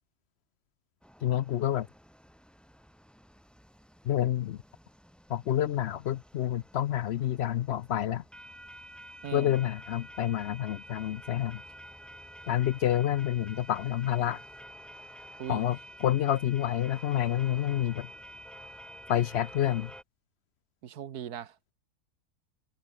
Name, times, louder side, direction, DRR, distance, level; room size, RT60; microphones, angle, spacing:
sound 1, 1.0-20.0, equal, ahead, 5.9 m, -50 dB
voice 1, 1.2-1.9 4.1-4.6 5.3-8.2 9.3-11.6 12.5-14.4 15.5-18.1 19.1-19.9, left 11 dB, 70° left, 0.6 m, -28 dB
voice 2, 9.2-9.6 15.4-15.7 20.8-21.7, right 9 dB, 85° right, 1.7 m, -40 dB
omnidirectional pair, 1.6 m